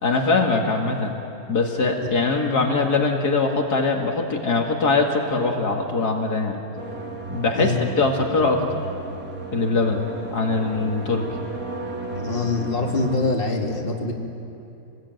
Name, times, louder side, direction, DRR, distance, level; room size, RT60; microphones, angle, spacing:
voice 1, 0.0-1.1 1.5-6.6 7.3-8.6 9.5-10.0 10.3-11.2, left 3 dB, 70° left, 1 dB, 2.5 m, -22 dB
sound 1, 6.8-13.2, right 3 dB, 55° right, 2.7 m, -34 dB
voice 2, 12.1-14.1, left 3 dB, 30° left, 0 dB, 2.6 m, -24 dB
27.0 x 20.0 x 9.3 m, 2.7 s
omnidirectional pair, 1.8 m